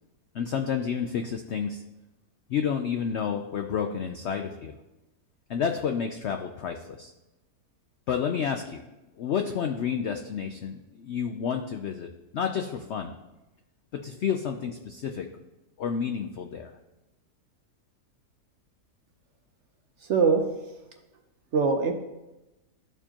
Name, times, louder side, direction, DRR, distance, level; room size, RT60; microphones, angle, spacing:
voice 1, 0.3-1.8 2.5-4.7 5.5-7.1 8.1-8.8 9.2-13.1 14.0-15.3 15.8-16.7, left 7 dB, 75° left, 5 dB, 0.6 m, -30 dB
voice 2, 20.0-20.4 21.5-21.9, right 5 dB, 55° right, 4 dB, 0.8 m, -22 dB
13.0 x 4.5 x 2.9 m, 1.0 s
omnidirectional pair, 1.7 m